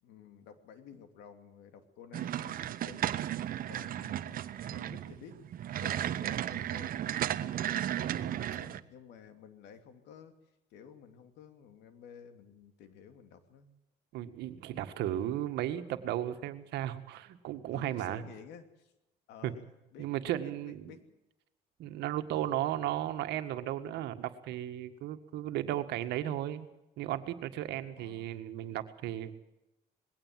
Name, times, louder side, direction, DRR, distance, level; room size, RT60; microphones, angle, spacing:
voice 1, 0.0-3.2 3.7-4.5 4.7-5.4 5.8-10.4 10.7-13.7 17.7-18.9 19.3-20.1 20.4-21.0 22.3-22.5 28.0-28.4, left 7 dB, 85° left, 8 dB, 2.9 m, -53 dB
sound 1, 2.1-8.8, right 11 dB, 55° right, 1.0 m, -34 dB
voice 2, 14.1-18.2 19.4-19.5 20.0-20.9 21.8-26.7 27.0-29.3, right 12 dB, 80° right, 8 dB, 1.9 m, -35 dB
21.0 x 17.0 x 7.7 m, 0.93 s
cardioid pair, 110°, 17 cm